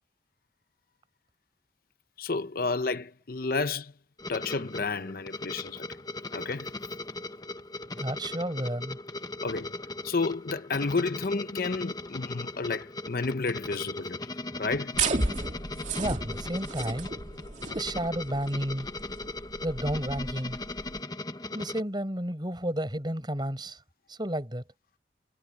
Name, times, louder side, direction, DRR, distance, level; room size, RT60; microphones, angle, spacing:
voice 1, 2.2-3.9 4.3-5.8 6.3-6.7 9.4-9.7 10.0-14.2 14.6-15.0, left 3 dB, 55° left, 0.8 m, -31 dB
sound 1, 4.2-21.8, left 2 dB, 20° left, 1.0 m, -39 dB
voice 2, 7.9-9.0 16.0-17.1 17.7-18.9 19.6-20.6 21.5-23.8 24.1-24.6, right 1 dB, 25° right, 5.8 m, -32 dB
sound 2, 14.9-21.0, right 3 dB, 40° right, 2.6 m, -34 dB
head